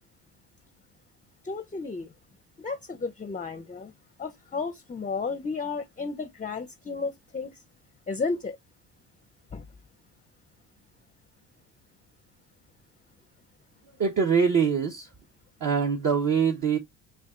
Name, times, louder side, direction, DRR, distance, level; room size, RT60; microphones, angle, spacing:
voice 1, 1.4-2.1 2.6-3.9 4.2-7.5 8.1-8.6 9.5-9.6, left 4 dB, 15° left, 0.7 m, -33 dB
voice 2, 14.0-15.1 15.6-16.8, right 6 dB, 40° right, 1.2 m, -23 dB
7.0 x 2.5 x 2.4 m
supercardioid pair, 75°, 46 cm